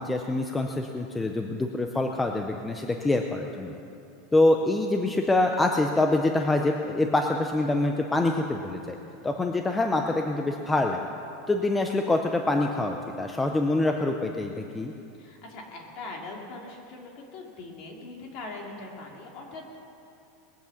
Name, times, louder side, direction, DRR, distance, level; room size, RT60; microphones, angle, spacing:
voice 1, 0.0-3.8 4.3-9.0 9.2-11.1 11.5-14.9, left 2 dB, 10° left, 3 dB, 0.5 m, -25 dB
voice 2, 15.2-19.8, left 2 dB, 45° left, 0 dB, 2.5 m, -41 dB
20.5 x 8.2 x 7.1 m, 2.6 s
supercardioid pair, 175°, 0 cm